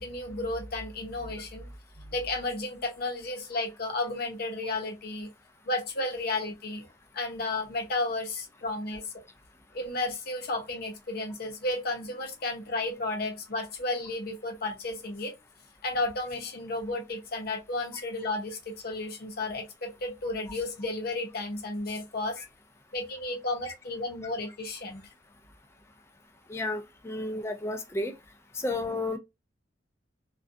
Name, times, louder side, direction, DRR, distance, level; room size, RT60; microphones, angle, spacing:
voice 1, 0.0-1.7 2.0-5.3 5.6-6.9 7.1-9.1 9.7-15.3 15.8-22.4 22.9-25.1, left 2 dB, 55° left, 0.7 m, -33 dB
voice 2, 26.5-28.1 28.5-29.2, left 2 dB, 15° left, 0.4 m, -32 dB
2.4 x 2.2 x 2.5 m
head